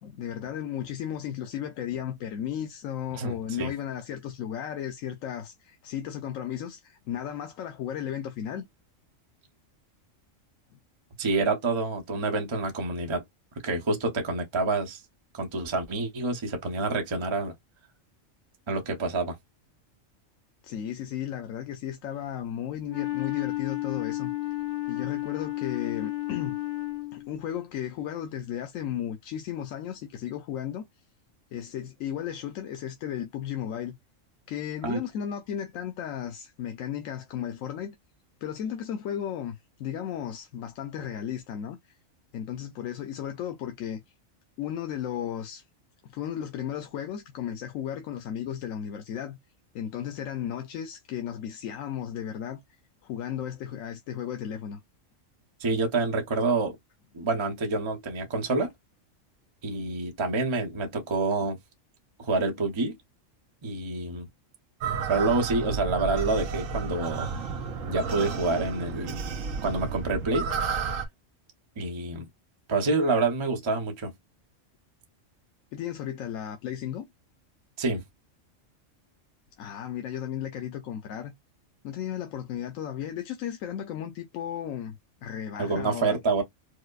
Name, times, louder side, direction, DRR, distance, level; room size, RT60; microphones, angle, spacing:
voice 1, 0.0-8.6 20.6-24.3 24.9-26.6 27.1-30.8 31.5-33.9 34.5-38.0 38.4-41.8 42.3-44.0 44.6-45.6 46.0-49.4 49.7-52.6 53.0-54.8 75.7-77.1 79.6-81.3 81.8-86.2, left 9 dB, 85° left, 1.0 m, -34 dB
voice 2, 3.1-3.7 11.2-13.2 13.6-15.0 15.3-17.5 18.7-19.4 34.8-35.0 55.6-56.8 57.1-58.7 59.6-61.6 62.2-62.9 63.6-64.2 65.1-67.3 67.9-69.2 69.6-70.5 71.8-72.3 72.7-74.1 77.8-78.0 85.6-86.4, right 3 dB, 30° right, 0.7 m, -27 dB
Wind instrument woodwind instrument, 22.8-27.4, left 18 dB, 50° left, 0.6 m, -32 dB
sound 1, 64.8-71.1, right 5 dB, 80° right, 1.1 m, -32 dB
4.8 x 2.0 x 2.3 m
omnidirectional pair, 1.3 m